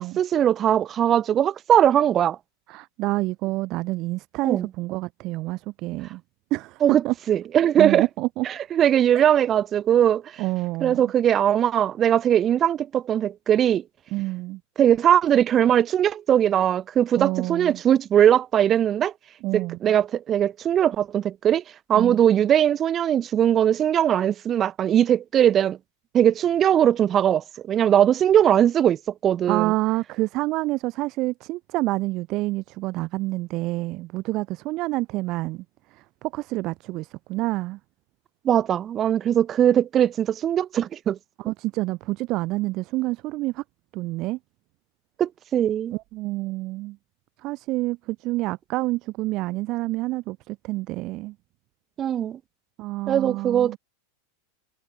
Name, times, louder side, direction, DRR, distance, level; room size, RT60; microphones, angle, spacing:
voice 1, 0.0-2.4 4.4-4.7 6.8-7.0 7.3-8.0 8.7-10.2 10.8-13.8 14.8-19.1 19.5-21.6 21.9-25.8 26.1-29.7 38.4-41.2 45.2-45.9 52.0-52.4 53.1-53.8, right 10 dB, 30° right, 1.5 m, -20 dB
voice 2, 2.7-6.2 6.5-7.1 7.8-8.5 10.4-11.1 14.1-14.6 17.2-17.8 19.4-20.0 21.9-22.2 29.5-35.6 35.9-37.8 41.4-43.6 43.9-44.4 45.9-47.0 47.4-51.3 52.8-53.8, right 20 dB, 45° right, 5.4 m, -28 dB
hypercardioid pair, 100°, 0 cm